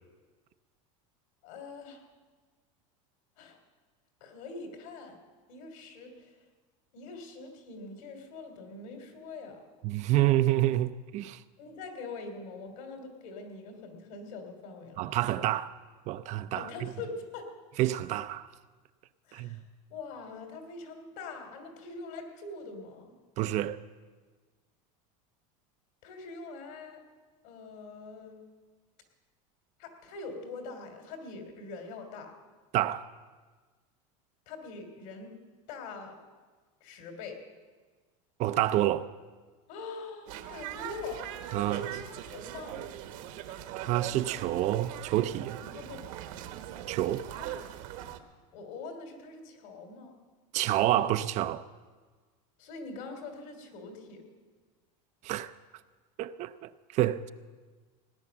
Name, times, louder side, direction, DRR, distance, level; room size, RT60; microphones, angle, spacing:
voice 1, 1.4-2.0 3.4-3.6 4.2-5.2 5.5-6.3 6.9-9.6 11.6-15.0 16.5-17.5 19.3-19.6 19.9-23.1 26.0-27.0 27.4-28.4 29.8-32.3 34.5-35.3 35.7-36.2 36.8-37.4 39.7-41.3 41.5-42.0 42.3-42.8 45.6-46.0 48.5-50.1 52.6-54.2, left 3 dB, 70° left, 3.2 m, -43 dB
voice 2, 9.8-11.4 15.0-15.7 16.1-16.7 17.8-18.5 19.3-19.6 23.4-23.8 32.7-33.1 38.4-39.1 41.5-41.8 43.8-45.6 46.9-47.3 50.5-51.6 55.2-55.5 56.2-57.3, right 14 dB, 40° right, 0.5 m, -28 dB
sound 1, 40.3-48.2, right 11 dB, 65° right, 1.3 m, -41 dB
18.0 x 10.0 x 7.1 m
supercardioid pair, 145°, 18 cm